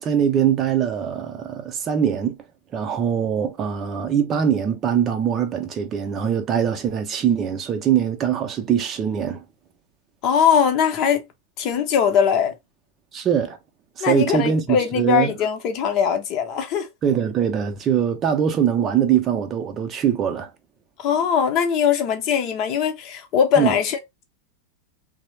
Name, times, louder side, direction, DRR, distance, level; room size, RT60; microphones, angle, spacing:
voice 1, 0.0-2.4 2.7-9.4 13.1-13.6 14.0-15.3 17.0-20.5 23.6-23.7, right 8 dB, 30° right, 0.5 m, -22 dB
voice 2, 10.2-11.2 11.6-12.5 14.0-16.9 21.0-24.2, left 8 dB, 40° left, 0.6 m, -21 dB
3.0 x 2.0 x 2.9 m
figure-of-eight pair, 90°, 0 cm